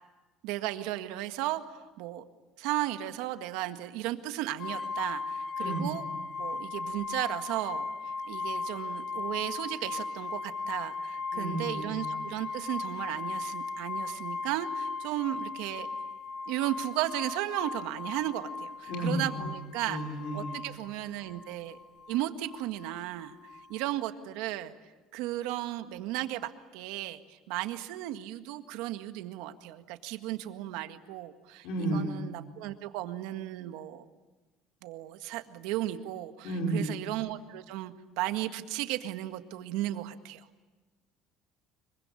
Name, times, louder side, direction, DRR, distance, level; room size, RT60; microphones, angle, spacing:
voice 1, 0.4-2.2 2.6-6.0 6.4-7.9 8.3-15.9 16.5-20.0 20.3-21.8 22.1-23.4 23.7-24.7 25.1-34.0 34.8-40.5, right 14 dB, 80° right, 8 dB, 1.7 m, -35 dB
sound 1, 4.6-24.0, left 4 dB, 40° left, 1.3 m, -37 dB
voice 2, 5.6-5.9 11.3-12.1 18.9-19.4 19.8-20.6 31.6-32.2 36.4-37.0, right 1 dB, 70° left, 1 dB, 5.0 m, -32 dB
25.5 x 23.5 x 9.8 m, 1.2 s
cardioid pair, 160°, 0 cm